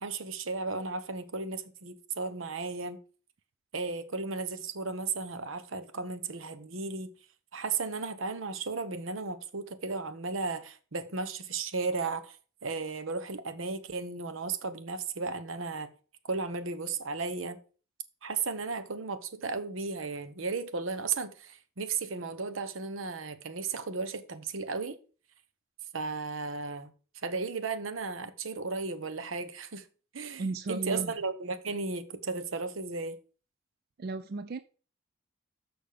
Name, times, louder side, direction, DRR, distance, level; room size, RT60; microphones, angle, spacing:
voice 1, 0.0-3.0 3.7-7.1 7.5-15.9 16.3-17.6 18.2-25.0 25.9-26.9 27.2-29.8 30.1-33.2, right 4 dB, 85° right, 1.0 m, -35 dB
voice 2, 30.4-31.1 34.0-34.6, right 3 dB, 50° right, 0.4 m, -34 dB
6.7 x 6.1 x 5.1 m
head